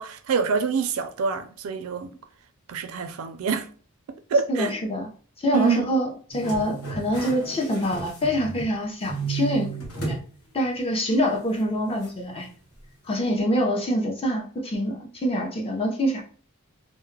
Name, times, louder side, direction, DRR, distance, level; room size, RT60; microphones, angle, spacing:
voice 1, 0.0-2.1 2.7-3.7 4.3-4.7 5.5-5.9, right 5 dB, 65° right, 0.4 m, -26 dB
voice 2, 4.5-5.1 5.4-9.7 10.1-10.2 10.5-12.5 13.0-16.2, equal, 25° left, 0.6 m, -25 dB
Jet Page Printing, 6.3-8.8 9.0-10.3 10.6-10.7 12.0-12.1, right 4 dB, 70° left, 0.9 m, -33 dB
2.2 x 2.1 x 3.1 m
head